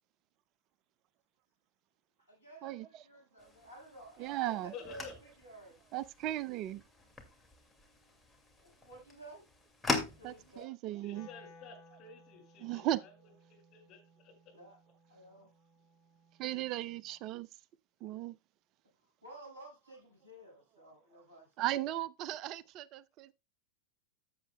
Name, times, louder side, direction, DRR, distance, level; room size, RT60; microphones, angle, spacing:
voice 1, 2.2-5.1 5.4-5.8 8.6-9.4 10.0-10.7 14.5-14.8 15.1-15.5 19.2-21.7, right 2 dB, 85° left, 5.6 m, -53 dB
sound 1, 3.4-10.6, left 3 dB, 5° left, 2.2 m, -42 dB
voice 2, 4.2-4.7 5.9-6.8 10.2-11.3 12.6-13.0 16.4-17.5 18.0-18.4 21.6-23.3, right 14 dB, 40° right, 0.4 m, -36 dB
voice 3, 4.7-5.2 11.0-14.6, left 5 dB, 35° left, 5.5 m, -52 dB
Wind instrument woodwind instrument, 11.1-17.2, left 2 dB, 50° left, 5.5 m, -61 dB
15.0 x 7.7 x 2.2 m
figure-of-eight pair, 90°, 0 cm